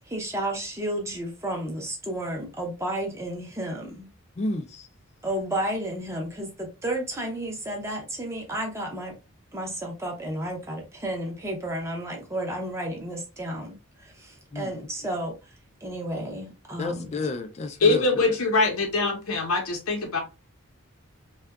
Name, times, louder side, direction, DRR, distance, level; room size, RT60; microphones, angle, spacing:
voice 1, 0.1-4.1 5.2-9.2 9.5-15.5 15.8-17.1, right 1 dB, 15° right, 0.6 m, -32 dB
voice 2, 4.4-4.9 14.5-14.7 16.8-18.2, left 3 dB, 30° left, 0.3 m, -31 dB
voice 3, 17.8-20.2, left 3 dB, 85° left, 0.7 m, -23 dB
2.7 x 2.2 x 2.2 m
head